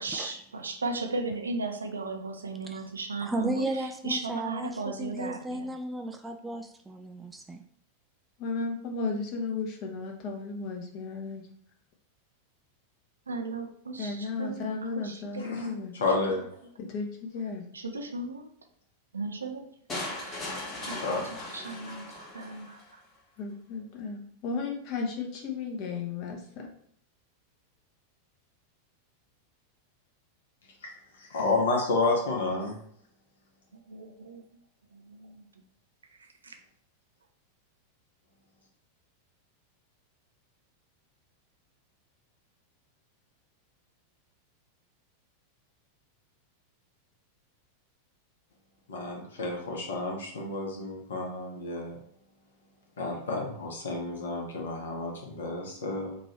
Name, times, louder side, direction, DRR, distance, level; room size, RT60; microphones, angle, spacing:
voice 1, 0.0-5.7 13.3-14.8 15.0-15.8 16.3-16.4 17.7-18.5 19.1-19.7 20.1-23.0 33.7-34.4 34.9-35.4 36.2-36.6, right 3 dB, 75° right, 5 dB, 0.5 m, -36 dB
voice 2, 3.2-7.6, right 1 dB, 10° right, 4 dB, 0.3 m, -35 dB
voice 3, 8.4-11.4 14.0-15.9 16.8-17.6 23.4-26.7, left 4 dB, 40° left, 2 dB, 0.8 m, -34 dB
voice 4, 16.0-16.5 21.0-21.2 30.8-30.9 31.2-32.8 48.9-52.0 53.0-56.2, left 3 dB, 65° left, 0 dB, 1.0 m, -30 dB
sound 1, 19.9-22.9, left 2 dB, 20° left, 1.2 m, -38 dB
3.0 x 2.6 x 4.3 m, 0.63 s
figure-of-eight pair, 90°, 0 cm